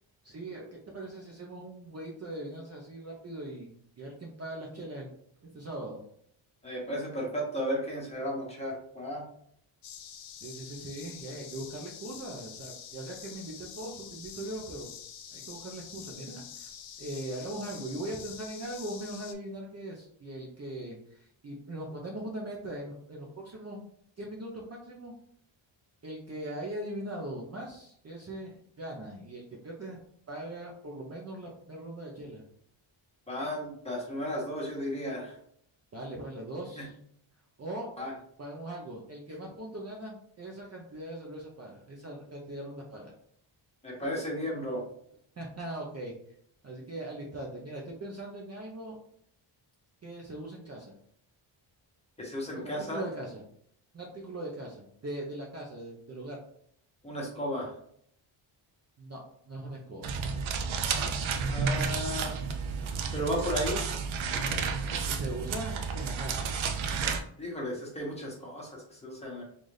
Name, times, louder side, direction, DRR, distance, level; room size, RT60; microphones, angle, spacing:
voice 1, 0.2-5.1 5.5-6.0 10.4-14.9 15.3-23.9 24.2-25.1 26.0-30.0 30.3-32.4 35.9-36.9 37.6-37.9 38.4-43.1 45.4-46.1 46.6-49.0 50.0-50.9 52.5-53.4 53.9-56.4 59.0-59.2 59.5-60.1 65.1-66.5, right 1 dB, 35° right, -2 dB, 0.6 m, -40 dB
voice 2, 6.6-9.3 33.3-35.4 36.8-36.9 38.0-38.1 43.8-44.8 52.2-53.0 57.0-57.8 61.5-62.4 63.1-63.8 67.4-69.4, equal, 15° left, -3 dB, 1.1 m, -34 dB
sound 1, 9.8-19.3, left 8 dB, 70° left, 0.6 m, -46 dB
sound 2, 60.0-67.2, right 5 dB, 75° right, 0.6 m, -31 dB
3.9 x 2.5 x 3.2 m, 0.67 s
wide cardioid pair, 145°, 49 cm